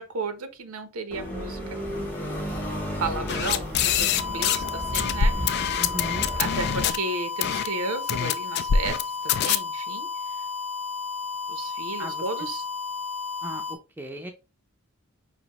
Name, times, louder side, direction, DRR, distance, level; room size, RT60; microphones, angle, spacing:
voice 1, 0.0-1.6 1.9-2.1 3.0-5.8 6.4-10.4 11.5-12.6, right 3 dB, 80° right, 0.7 m, -34 dB
sound 1, 1.1-6.9, equal, 10° left, 0.8 m, -33 dB
sound 2, 3.3-4.7 4.9-7.0 7.4-7.7 8.1-9.0 9.3-9.6, left 8 dB, 50° left, 0.3 m, -24 dB
sound 3, 4.2-13.8, left 5 dB, 85° left, 0.9 m, -33 dB
voice 2, 5.8-6.3 12.0-12.2 13.4-14.3, right 1 dB, 10° right, 0.5 m, -37 dB
5.0 x 2.6 x 2.9 m
head